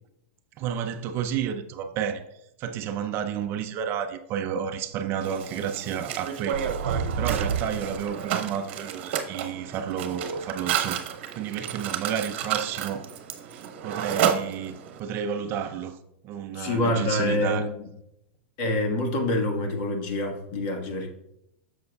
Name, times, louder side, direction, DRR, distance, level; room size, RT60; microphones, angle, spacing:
voice 1, 0.6-11.0 11.3-13.0 13.5-16.0 16.2-17.7, right 8 dB, 35° right, 0.5 m, -31 dB
Mechanisms, 5.2-15.0, right 9 dB, 60° right, 1.0 m, -31 dB
sound 1, 6.5-8.2, right 6 dB, 85° right, 0.5 m, -29 dB
voice 2, 16.5-17.6 18.6-21.1, left 1 dB, 50° left, 1.5 m, -26 dB
7.7 x 6.6 x 2.3 m
supercardioid pair, 140°, 7 cm